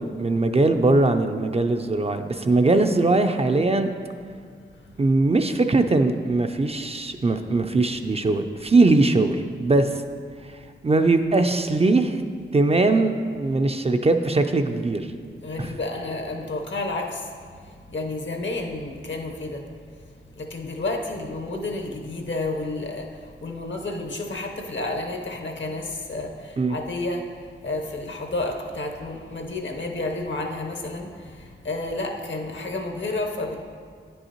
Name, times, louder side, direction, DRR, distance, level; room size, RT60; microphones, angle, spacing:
voice 1, 0.0-3.9 5.0-10.0 10.8-12.2 12.5-15.1 15.6-15.7 26.6-26.8, right 2 dB, 30° right, 7 dB, 0.4 m, -21 dB
voice 2, 15.4-17.3 17.9-19.6 20.4-23.1 23.4-27.2 27.6-33.6, left 2 dB, 65° left, 2 dB, 0.9 m, -30 dB
9.5 x 5.4 x 2.9 m, 2.2 s
cardioid pair, 50°, 21 cm